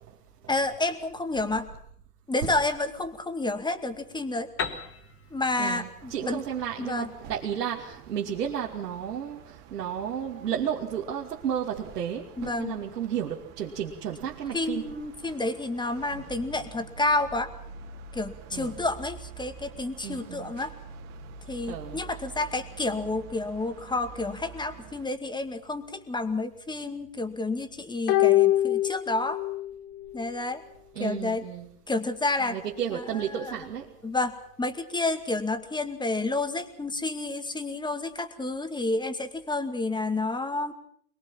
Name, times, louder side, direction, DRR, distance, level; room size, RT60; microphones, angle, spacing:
voice 1, 0.5-1.7 2.3-4.5 5.3-6.4 6.8-7.1 12.4-12.7 14.5-17.5 18.1-20.7 21.5-29.4 30.1-30.6 31.0-31.4 31.9-32.6 32.9-33.6 34.0-40.7, left 2 dB, 10° left, 9 dB, 2.3 m, -30 dB
Piano, 4.6-8.2, left 6 dB, 30° left, 3.0 m, -38 dB
voice 2, 5.6-14.9 18.5-18.8 20.0-20.5 21.7-22.0 30.9-31.7 32.4-33.9, right 9 dB, 85° right, -1 dB, 2.7 m, -33 dB
sound 1, 6.0-25.1, right 5 dB, 55° right, 3.1 m, -47 dB
sound 2, 28.1-29.7 30.0-30.1, left 15 dB, 55° left, 2.0 m, -23 dB
23.5 x 21.5 x 7.5 m, 0.65 s
hypercardioid pair, 100°, 47 cm